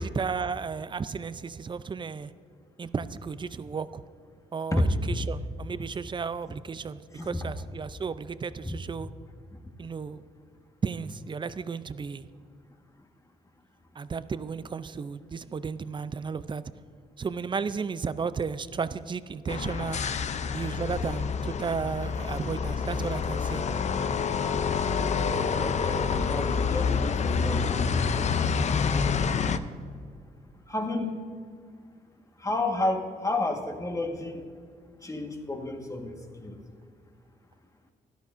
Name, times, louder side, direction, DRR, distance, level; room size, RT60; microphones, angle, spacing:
voice 1, 0.0-2.3 2.8-4.0 4.5-9.1 9.8-10.2 10.8-12.3 14.0-16.6 17.2-20.0 20.5-23.6, right 5 dB, 30° right, 14 dB, 0.5 m, -33 dB
voice 2, 7.1-7.5 8.6-8.7 9.5-9.6 25.6-28.4 30.7-31.2 32.4-34.5 35.0-36.6, left 2 dB, 20° left, 3 dB, 1.5 m, -31 dB
sound 1, 19.5-29.6, left 6 dB, 45° left, 0.6 m, -27 dB
16.5 x 12.5 x 2.6 m, 2.1 s
cardioid pair, 75°, 17 cm